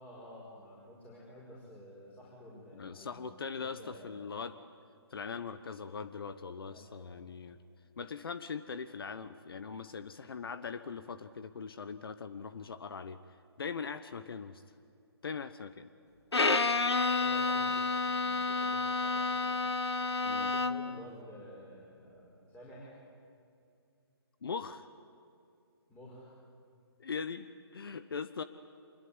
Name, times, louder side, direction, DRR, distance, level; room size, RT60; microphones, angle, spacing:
voice 1, 0.0-4.2 6.7-7.1 17.2-19.6 20.4-22.9 25.9-26.3, equal, 10° left, -6 dB, 5.4 m, -52 dB
voice 2, 2.8-4.6 5.1-7.6 8.0-13.2 13.6-14.6 15.2-15.9 20.2-20.5 24.4-24.9 27.0-28.4, left 5 dB, 60° left, 12 dB, 1.1 m, -41 dB
Bowed string instrument, 16.3-21.0, left 3 dB, 90° left, 1.6 m, -30 dB
26.0 x 22.0 x 9.7 m, 2.4 s
hypercardioid pair, 150°, 14 cm